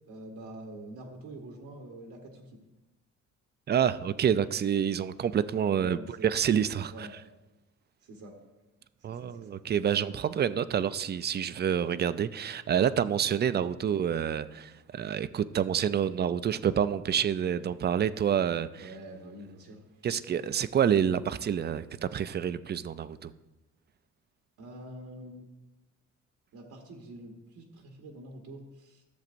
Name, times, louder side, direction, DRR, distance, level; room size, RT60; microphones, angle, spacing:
voice 1, 0.1-2.6 5.7-6.3 6.9-7.1 8.0-8.3 9.0-9.5 18.8-19.9 24.6-25.5 26.5-29.0, right 1 dB, 80° right, 1 dB, 1.3 m, -46 dB
voice 2, 3.7-6.0 6.2-6.9 9.0-18.9 20.0-23.3, right 8 dB, 35° right, 15 dB, 0.4 m, -28 dB
13.5 x 7.2 x 2.6 m, 1.1 s
cardioid pair, 90°, 30 cm